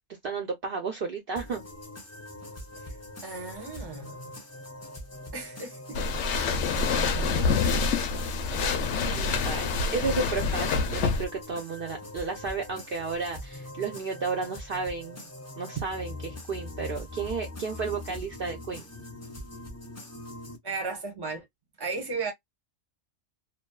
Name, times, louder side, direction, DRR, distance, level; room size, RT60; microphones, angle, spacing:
voice 1, 0.2-1.7 9.1-15.3 15.6-18.9, right 4 dB, 55° right, 0.7 m, -33 dB
sound 1, 1.4-20.6, left 2 dB, 20° left, 0.4 m, -42 dB
voice 2, 3.2-4.3 5.3-6.0 6.3-7.8 8.4-8.5 9.3-9.4 20.6-21.5 21.8-22.3, right 4 dB, 20° right, 0.8 m, -37 dB
sound 2, 5.9-11.3, left 4 dB, 70° left, 0.8 m, -27 dB
2.6 x 2.3 x 2.2 m
omnidirectional pair, 1.3 m